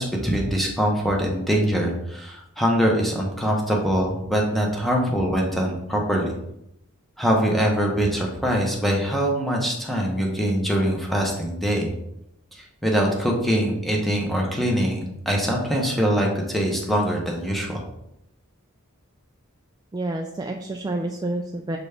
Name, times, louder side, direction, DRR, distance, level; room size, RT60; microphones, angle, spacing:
voice 1, 0.0-6.3 7.2-11.9 12.8-17.8, equal, ahead, -1 dB, 1.0 m, -23 dB
voice 2, 19.9-21.8, right 2 dB, 20° right, 2 dB, 0.3 m, -29 dB
6.6 x 4.1 x 3.4 m, 0.81 s
head